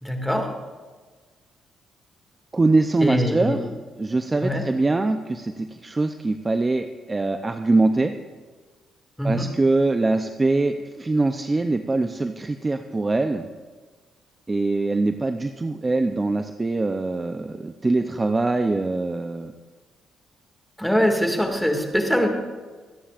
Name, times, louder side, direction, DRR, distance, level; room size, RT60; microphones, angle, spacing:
voice 1, 0.0-0.5 3.0-3.7 4.4-4.6 9.2-9.5 20.8-22.3, equal, ahead, 3 dB, 2.1 m, -23 dB
voice 2, 2.5-3.6 4.0-8.1 9.2-13.5 14.5-19.5, right 2 dB, 20° right, 7 dB, 0.6 m, -23 dB
24.5 x 10.0 x 2.5 m, 1.4 s
cardioid pair, 90°, 0 cm